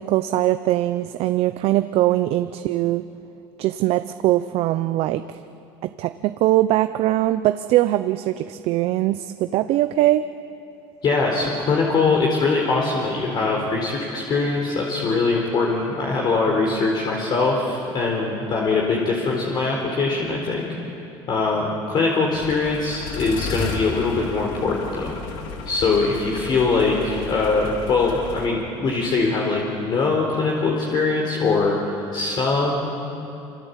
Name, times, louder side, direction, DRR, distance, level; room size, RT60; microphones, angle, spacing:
voice 1, 0.0-3.0 3.6-5.2 6.0-10.2, right 15 dB, 60° right, 10 dB, 0.8 m, -21 dB
voice 2, 11.0-20.7 21.3-25.1 25.7-33.0, left 3 dB, 40° left, -1 dB, 4.0 m, -22 dB
sound 1, 22.3-28.5, left 4 dB, 80° left, 3.2 m, -33 dB
27.0 x 26.0 x 8.3 m, 2.8 s
cardioid pair, 125°, 12 cm